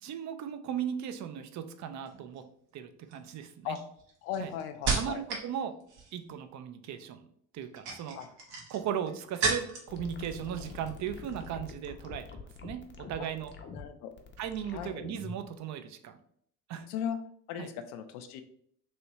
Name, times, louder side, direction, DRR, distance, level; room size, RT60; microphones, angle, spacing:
voice 1, 0.0-2.5 2.7-3.8 4.4-4.5 4.9-5.7 6.1-7.3 7.5-8.2 8.7-12.3 12.6-12.8 13.1-13.5 14.4-16.2 16.7-16.9 17.6-17.7, right 9 dB, 40° right, 9 dB, 0.5 m, -37 dB
pulling Al can cover, 2.0-2.4 3.1-5.5 5.8-6.3 7.5-10.0 10.3-10.9 11.2-11.5, right 4 dB, 70° right, 1.1 m, -34 dB
voice 2, 4.2-5.2 8.2-8.3 13.7-14.1 14.7-14.9 16.9-17.2 17.5-18.4, left 9 dB, 75° left, 8 dB, 0.6 m, -37 dB
sound 1, 9.9-15.5, left 4 dB, 25° left, 0.6 m, -45 dB
3.2 x 3.0 x 2.8 m, 0.66 s
hypercardioid pair, 65°, 44 cm